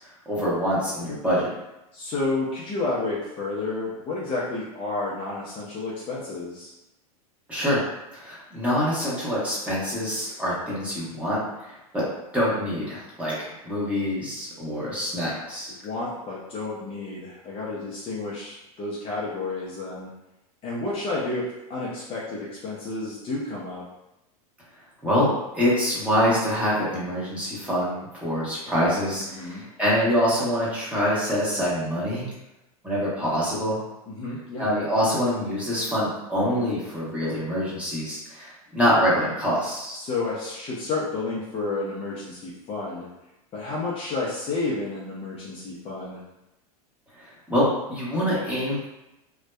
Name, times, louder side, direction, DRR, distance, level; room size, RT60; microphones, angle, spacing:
voice 1, 0.3-1.5 7.5-7.8 8.1-12.0 12.3-15.7 25.0-25.3 25.5-32.3 32.8-33.8 34.6-40.0 47.2-48.8, equal, 5° right, -9 dB, 1.0 m, -25 dB
voice 2, 1.9-6.7 15.8-20.1 20.6-21.4 21.7-23.8 29.2-29.6 34.1-34.7 39.9-43.1 43.5-46.2, left 3 dB, 30° left, -6 dB, 0.5 m, -31 dB
2.6 x 2.1 x 2.2 m, 0.92 s
hypercardioid pair, 110°, 19 cm